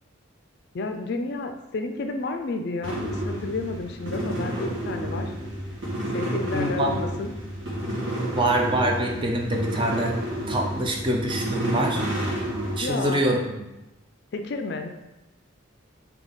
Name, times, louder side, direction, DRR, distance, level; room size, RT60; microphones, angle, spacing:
voice 1, 0.7-5.3 6.1-7.3 12.8-13.2 14.3-14.9, left 3 dB, 55° left, 5 dB, 0.3 m, -31 dB
sound 1, 2.8-12.8, right 1 dB, 65° right, 1.2 m, -30 dB
voice 2, 6.5-6.9 8.3-10.1 10.5-12.0 12.8-13.4, right 1 dB, 25° right, 1 dB, 0.5 m, -25 dB
3.6 x 2.8 x 3.9 m, 0.98 s
head